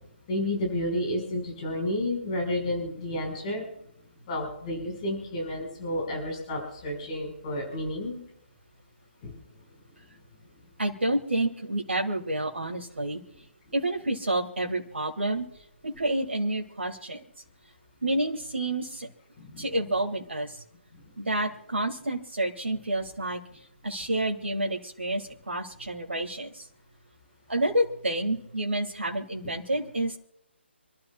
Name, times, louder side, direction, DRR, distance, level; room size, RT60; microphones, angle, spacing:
voice 1, 0.3-3.6 4.3-8.2 9.2-9.3 19.4-19.6, left 1 dB, 30° left, 1 dB, 5.4 m, -31 dB
voice 2, 10.8-13.2 13.7-15.4 15.8-17.2 18.0-19.1 19.6-20.6 21.2-23.4 23.8-26.7 27.5-30.2, right 1 dB, 70° right, 1 dB, 2.1 m, -29 dB
28.0 x 12.5 x 2.4 m, 0.80 s
figure-of-eight pair, 145°, 7 cm